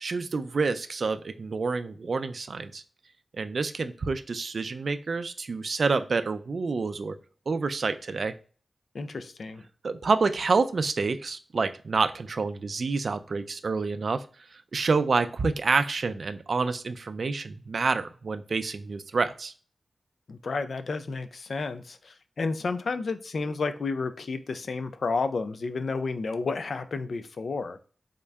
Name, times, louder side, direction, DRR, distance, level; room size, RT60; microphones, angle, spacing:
voice 1, 0.0-2.8 3.3-7.2 7.5-8.3 9.8-14.2 14.7-19.5, right 4 dB, 65° right, 10 dB, 0.3 m, -28 dB
voice 2, 8.9-9.7 20.3-27.8, left 4 dB, 70° left, 10 dB, 0.4 m, -31 dB
3.6 x 2.1 x 3.4 m, 0.39 s
cardioid pair, 65°, 0 cm